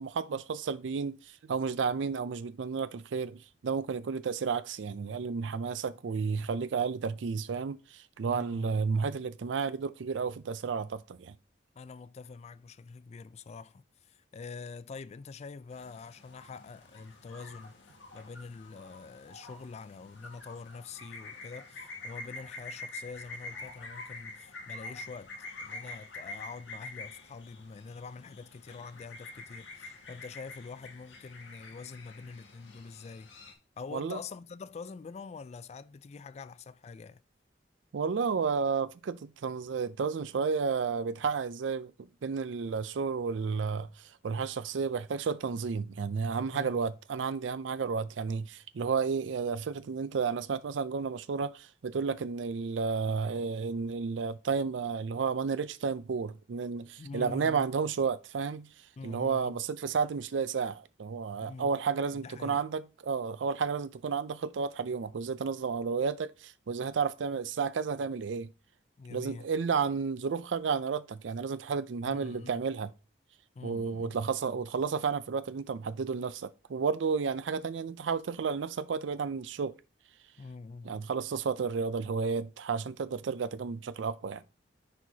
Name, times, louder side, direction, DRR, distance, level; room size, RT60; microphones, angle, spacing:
voice 1, 0.0-11.3 33.9-34.2 37.9-68.5 69.1-72.9 73.6-79.8 80.8-84.4, right 5 dB, 85° right, 0.4 m, -32 dB
voice 2, 8.3-8.7 11.8-33.3 33.8-37.2 46.5-46.8 57.0-57.7 59.0-59.6 61.4-61.7 62.1-62.6 69.0-69.5 72.0-72.5 73.5-74.2 80.4-81.1, left 4 dB, 35° left, 0.3 m, -45 dB
sound 1, 15.7-33.5, left 2 dB, 80° left, 1.6 m, -47 dB
10.0 x 4.6 x 2.7 m
head